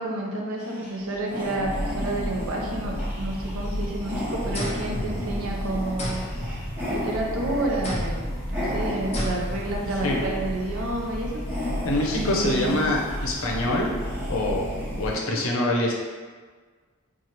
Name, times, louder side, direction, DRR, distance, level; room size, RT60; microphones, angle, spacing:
voice 1, 0.0-6.3 6.9-11.3 12.1-12.8 15.3-15.4, right 2 dB, 85° right, -1 dB, 0.7 m, -30 dB
sound 1, 0.6-9.7 10.0-10.8 11.1-15.3, left 1 dB, 10° right, 1.4 m, -35 dB
sound 2, 1.0-15.1, equal, 10° left, 1.4 m, -33 dB
sound 3, 4.5-5.6 6.0-7.3 7.8-8.4 9.1-9.8, left 1 dB, 30° left, 0.7 m, -34 dB
voice 2, 11.8-14.0 14.3-14.7 15.0-15.9, left 1 dB, 70° left, -1 dB, 0.7 m, -25 dB
4.6 x 2.4 x 2.9 m, 1.5 s
head